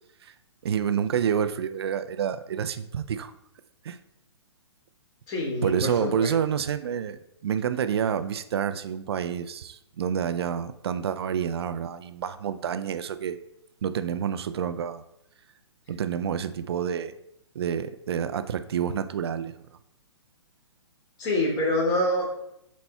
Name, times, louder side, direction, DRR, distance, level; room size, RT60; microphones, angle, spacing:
voice 1, 0.6-3.3 3.8-4.0 5.6-13.4 13.8-15.0 15.9-17.1 17.5-19.5, right 8 dB, 60° right, 11 dB, 0.5 m, -28 dB
voice 2, 5.3-6.4 21.2-22.5, left 1 dB, 25° left, -2 dB, 2.2 m, -26 dB
10.5 x 4.2 x 2.3 m, 0.78 s
figure-of-eight pair, 125°, 15 cm